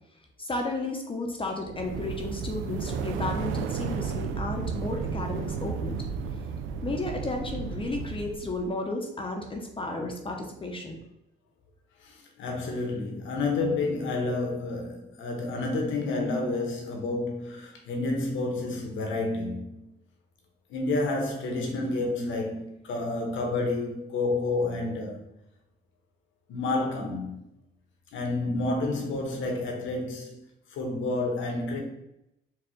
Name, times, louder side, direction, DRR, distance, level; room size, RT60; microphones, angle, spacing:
voice 1, 0.4-6.0 6.8-11.0, left 2 dB, 25° left, 0.7 m, -33 dB
sound 1, 1.6-8.6, right 6 dB, 85° right, 0.4 m, -33 dB
voice 2, 12.0-19.8 20.7-25.2 26.5-27.4 28.1-30.4 30.7-31.8, left 2 dB, 75° left, 1.1 m, -29 dB
4.5 x 2.4 x 3.7 m
cardioid pair, 90°, 20 cm